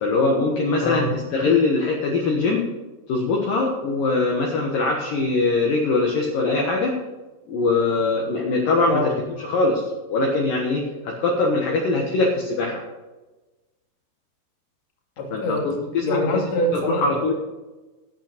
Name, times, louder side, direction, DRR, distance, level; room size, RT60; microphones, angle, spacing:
voice 1, 0.0-2.7 3.1-7.0 7.5-9.1 9.4-9.8 10.1-12.8 15.3-16.4 16.7-17.3, left 3 dB, 65° left, -1 dB, 2.6 m, -22 dB
voice 2, 0.8-1.1 8.9-9.1 15.2-15.7 16.0-17.0, left 1 dB, 45° left, 2 dB, 2.6 m, -24 dB
12.0 x 8.2 x 5.1 m, 1.2 s
omnidirectional pair, 5.0 m